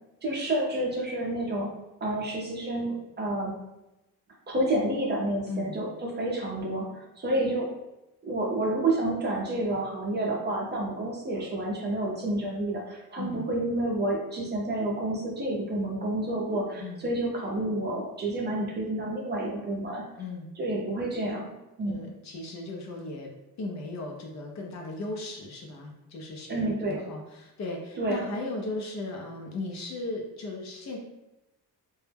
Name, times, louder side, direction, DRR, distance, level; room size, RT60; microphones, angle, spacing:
voice 1, 0.2-1.7 2.0-3.5 4.5-7.7 8.2-20.0 20.6-21.5 21.8-22.0 26.5-27.0 28.0-28.2, right 1 dB, 30° right, -2 dB, 0.5 m, -29 dB
voice 2, 5.5-5.8 13.2-13.5 16.8-17.0 20.2-20.5 21.8-23.3 23.6-31.0, left 2 dB, 50° left, 1 dB, 0.5 m, -37 dB
2.2 x 2.0 x 3.2 m, 0.95 s
cardioid pair, 125°, 38 cm